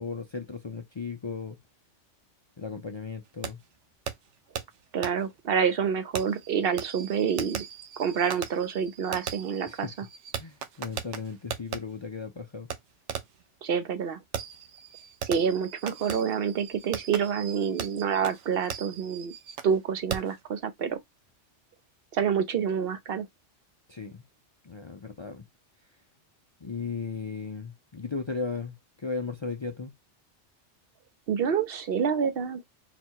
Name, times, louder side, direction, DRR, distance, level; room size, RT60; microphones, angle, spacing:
voice 1, 0.0-1.6 2.6-3.6 9.7-9.9 10.4-12.7 23.9-24.3 24.6-25.5 26.6-29.9, left 4 dB, 50° left, 0.3 m, -36 dB
Fireworks, 3.4-3.5 4.1-4.2 4.6-4.7 5.0-5.1 6.2-11.8 12.7-12.8 13.1-13.4 14.3-19.8 20.1-20.4, right 8 dB, 80° right, 1.0 m, -38 dB
voice 2, 4.9-7.6 8.0-9.9 13.6-14.2 15.2-19.3 19.6-21.0 22.1-23.3 31.3-32.6, right 7 dB, 60° right, 0.8 m, -27 dB
4.0 x 2.2 x 4.5 m
omnidirectional pair, 1.2 m